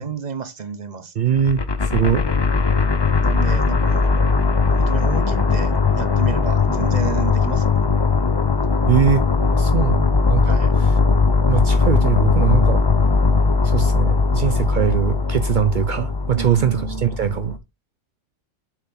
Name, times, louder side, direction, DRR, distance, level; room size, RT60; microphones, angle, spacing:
voice 1, 0.0-1.1 3.2-4.2 4.7-7.8 10.4-10.7 16.3-17.5, right 7 dB, 40° right, 0.8 m, -31 dB
voice 2, 1.2-2.2 8.9-9.3 9.5-10.5 11.5-12.8 13.6-17.6, right 8 dB, 70° right, 0.4 m, -21 dB
sound 1, 1.4-17.6, left 4 dB, 35° left, 0.4 m, -19 dB
7.3 x 3.7 x 5.3 m
omnidirectional pair, 1.4 m